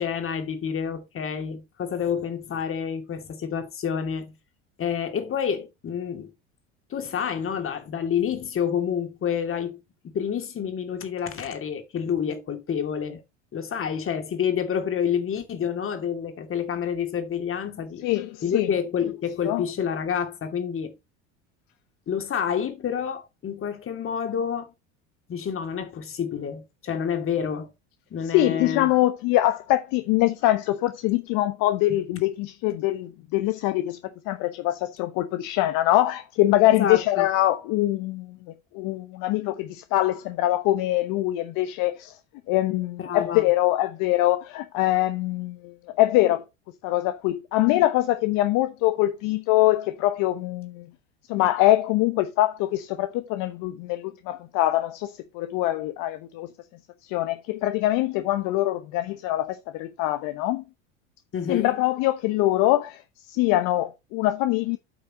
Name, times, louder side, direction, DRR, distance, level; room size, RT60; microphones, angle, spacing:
voice 1, 0.0-4.3 4.8-6.3 6.9-13.2 13.5-18.1 18.4-20.9 22.1-24.7 25.3-27.7 28.1-28.9 36.7-37.3 43.0-43.5 61.3-61.7, left 7 dB, 35° left, 2.6 m, -28 dB
voice 2, 18.0-18.7 19.4-19.6 28.3-42.2 42.5-46.4 46.8-50.9 51.3-56.5 57.0-60.6 61.5-64.8, left 15 dB, 60° left, 1.0 m, -23 dB
8.6 x 5.5 x 5.2 m
hypercardioid pair, 90°, 36 cm